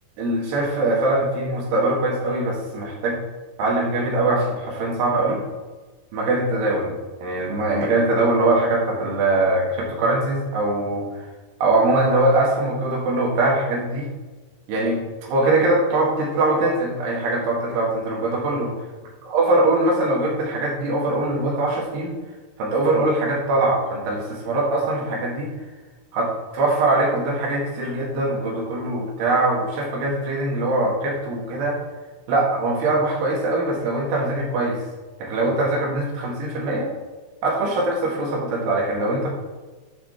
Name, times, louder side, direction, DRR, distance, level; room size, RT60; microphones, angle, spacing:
voice 1, 0.2-3.2 3.6-5.4 6.1-11.1 11.6-14.1 14.7-18.7 19.2-22.1 22.6-25.5 26.1-31.8 32.3-34.8 35.2-36.9 37.4-39.3, right 2 dB, 90° right, -3 dB, 4.1 m, -22 dB
9.7 x 6.6 x 3.5 m, 1.3 s
omnidirectional pair, 4.7 m